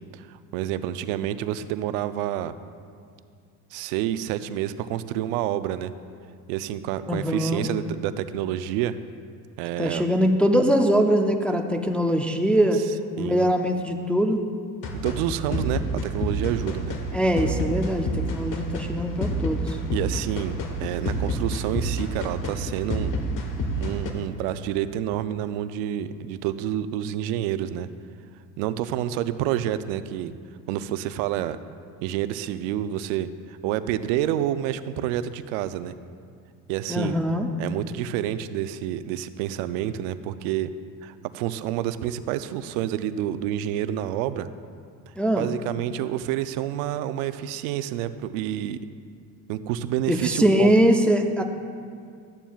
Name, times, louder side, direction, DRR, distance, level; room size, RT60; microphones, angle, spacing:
voice 1, 0.1-2.5 3.7-5.9 6.5-8.9 9.6-10.1 13.2-13.5 15.0-16.9 19.9-23.1 23.8-27.9 28.6-30.3 30.7-31.6 32.0-35.9 36.7-37.2 37.6-40.7 41.0-44.5 45.3-48.8 49.5-50.7, right 11 dB, 85° right, 12 dB, 0.5 m, -28 dB
voice 2, 7.1-7.7 9.8-12.8 13.2-14.4 17.1-19.8 36.9-37.5 45.2-45.5 50.1-51.4, equal, 5° left, 4 dB, 0.3 m, -22 dB
sound 1, 14.8-24.1, equal, 50° left, 1.2 m, -29 dB
13.0 x 8.9 x 2.3 m, 2.2 s
supercardioid pair, 110°, 40 cm